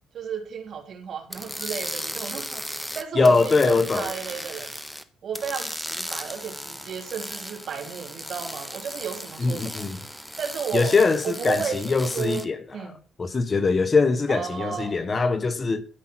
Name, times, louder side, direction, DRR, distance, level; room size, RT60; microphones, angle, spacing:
voice 1, 0.1-4.7 5.2-9.9 10.4-11.0 11.2-13.0 14.3-15.0, right 7 dB, 60° right, 3.3 m, -33 dB
sound 1, 1.3-5.0 5.3-12.4, equal, 5° left, 1.2 m, -36 dB
voice 2, 3.2-4.1 9.4-10.0 10.7-12.6 13.2-15.8, left 4 dB, 35° left, 1.2 m, -22 dB
13.0 x 5.8 x 7.7 m
cardioid pair, 90°, 0 cm